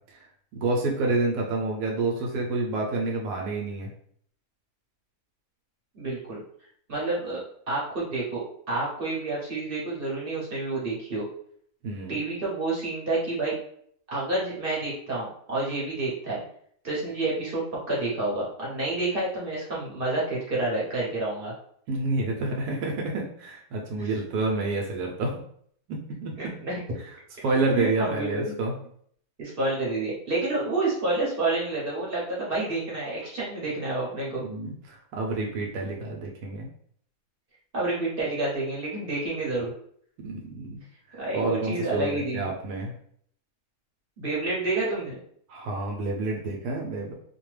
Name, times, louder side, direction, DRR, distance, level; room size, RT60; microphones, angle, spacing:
voice 1, 0.5-3.9 11.8-12.2 21.9-25.4 25.9-26.5 27.4-28.7 34.3-36.7 40.2-40.8 41.1-42.9 45.5-47.1, right 2 dB, 80° right, -1 dB, 1.1 m, -29 dB
voice 2, 6.0-6.4 6.9-7.4 7.7-11.3 12.1-13.5 14.1-16.4 16.8-21.5 24.0-24.1 26.4-26.8 27.7-28.5 29.4-34.5 37.7-39.7 41.2-42.5 44.2-45.2, right 2 dB, 45° right, -5 dB, 0.8 m, -29 dB
2.6 x 2.2 x 3.1 m, 0.63 s
omnidirectional pair, 1.6 m